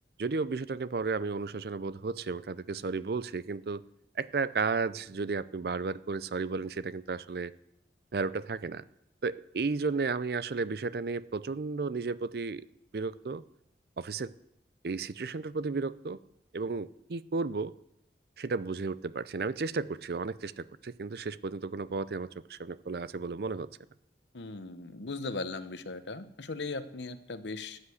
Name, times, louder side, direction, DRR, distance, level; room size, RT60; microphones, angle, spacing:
voice 1, 0.2-3.8 4.2-7.5 8.1-8.8 9.2-12.7 12.9-13.4 14.0-14.3 14.8-16.2 16.5-17.7 18.4-23.7, right 4 dB, 60° right, 17 dB, 0.5 m, -33 dB
voice 2, 24.3-27.8, left 3 dB, 85° left, 11 dB, 1.0 m, -38 dB
13.0 x 8.3 x 8.3 m, 0.79 s
head